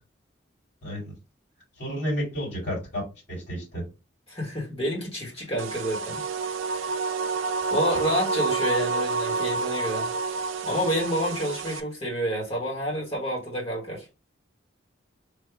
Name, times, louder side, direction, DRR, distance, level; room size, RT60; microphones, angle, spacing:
voice 1, 0.8-1.1 1.8-3.0 3.3-3.8, equal, 60° left, 2.5 m, -31 dB
voice 2, 4.3-6.2 6.7-6.9 7.7-10.1 10.6-14.1, equal, 30° left, 1.3 m, -29 dB
sound 1, 5.6-11.8, right 4 dB, 85° right, 0.5 m, -28 dB
3.5 x 2.4 x 4.5 m
head